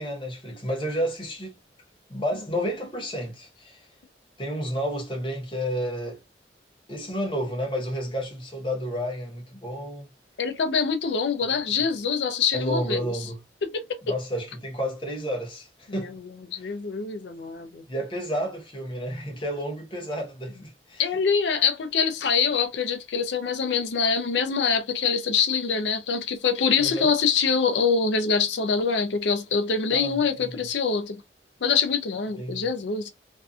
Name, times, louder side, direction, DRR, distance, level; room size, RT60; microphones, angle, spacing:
voice 1, 0.0-1.6 2.1-3.9 4.4-6.2 6.9-10.1 12.5-13.4 14.0-16.2 16.5-16.7 17.9-21.0 26.8-27.1 29.9-30.2 32.4-32.7, equal, 30° left, 0.9 m, -31 dB
voice 2, 10.4-13.1 13.7-14.0 16.0-16.1 16.5-17.8 21.0-31.2 31.6-33.1, left 5 dB, 80° left, 0.5 m, -24 dB
2.6 x 2.4 x 2.3 m
head